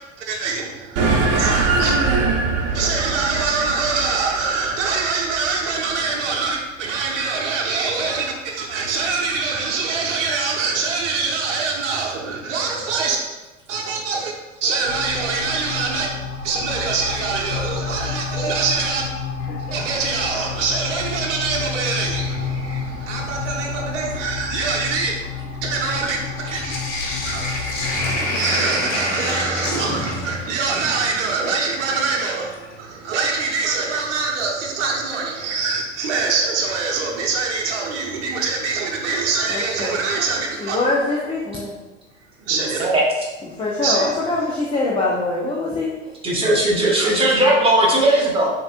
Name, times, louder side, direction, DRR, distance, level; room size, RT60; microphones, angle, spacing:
voice 1, 0.2-2.0 2.7-13.2 13.7-19.0 19.6-25.1 25.6-26.8 27.2-40.8 42.5-42.9 43.8-44.5 47.0-47.1, right 4 dB, 65° right, -1 dB, 0.9 m, -24 dB
sound 1, 1.0-5.7, right 3 dB, 40° right, 1.1 m, -22 dB
sound 2, 14.9-28.2, left 5 dB, 85° left, 0.5 m, -30 dB
Sink (filling or washing), 19.3-21.3 21.7-22.5 23.3-23.4 23.7-32.8 34.5-34.6 36.4-36.9 37.2-37.3 37.6-37.7, left 2 dB, 45° left, 1.6 m, -30 dB
voice 2, 39.5-40.0 40.6-41.8 43.4-45.9, left 2 dB, 15° left, -4 dB, 0.7 m, -23 dB
voice 3, 46.2-48.5, right 1 dB, 15° right, -4 dB, 1.4 m, -17 dB
7.3 x 3.0 x 2.4 m, 1.1 s
figure-of-eight pair, 80°, 38 cm